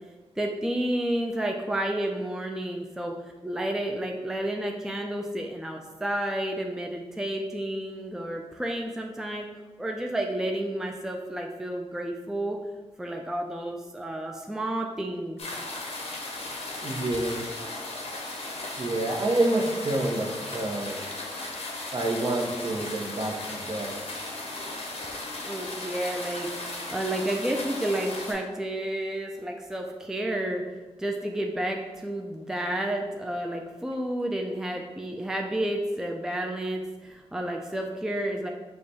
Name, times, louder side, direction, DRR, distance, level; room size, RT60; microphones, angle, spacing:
voice 1, 0.4-3.2 3.4-9.5 9.8-12.6 13.0-15.4 25.4-30.6 31.0-38.5, right 1 dB, 5° right, 1 dB, 0.4 m, -31 dB
sound 1, 15.4-28.3, left 2 dB, 70° left, 0.9 m, -36 dB
voice 2, 16.8-17.5 18.8-21.0 21.9-23.9, right 2 dB, 45° right, 1 dB, 0.7 m, -28 dB
4.6 x 2.2 x 4.1 m, 1.2 s
cardioid pair, 50°, 11 cm